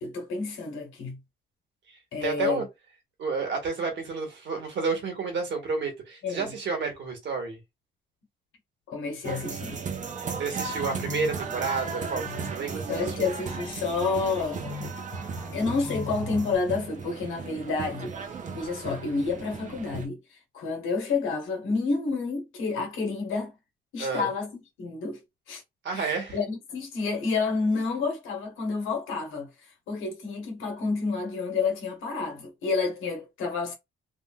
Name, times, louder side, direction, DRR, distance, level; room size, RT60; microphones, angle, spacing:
voice 1, 0.0-1.2 2.1-2.6 6.2-6.5 8.9-9.8 12.9-14.7 15.5-18.1 18.5-20.2 20.5-23.5 23.9-25.2 25.5-25.6 25.9-29.5 29.9-33.7, left 4 dB, 80° left, 1.3 m, -29 dB
voice 2, 1.9-2.7 3.2-7.6 10.4-13.3 24.0-24.3 25.8-26.4, right 4 dB, 65° right, 1.7 m, -31 dB
sound 1, 9.2-20.1, right 5 dB, 40° right, 0.8 m, -36 dB
sound 2, 10.8-16.6, left 3 dB, 5° left, 1.0 m, -40 dB
3.6 x 2.4 x 2.4 m
cardioid pair, 90°, 20 cm